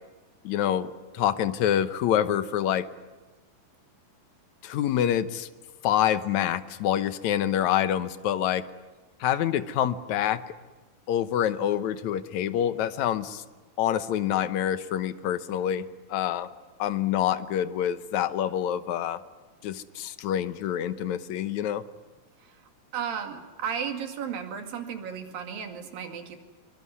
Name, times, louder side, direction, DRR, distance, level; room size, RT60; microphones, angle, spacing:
voice 1, 0.4-2.9 4.6-5.5 5.8-8.6 9.2-10.4 11.1-13.4 13.8-16.5 16.8-19.2 19.6-21.8, left 10 dB, 70° left, 12 dB, 2.0 m, -26 dB
voice 2, 22.9-26.4, right 7 dB, 75° right, 5 dB, 3.9 m, -34 dB
24.5 x 22.0 x 9.8 m, 1.2 s
omnidirectional pair, 4.1 m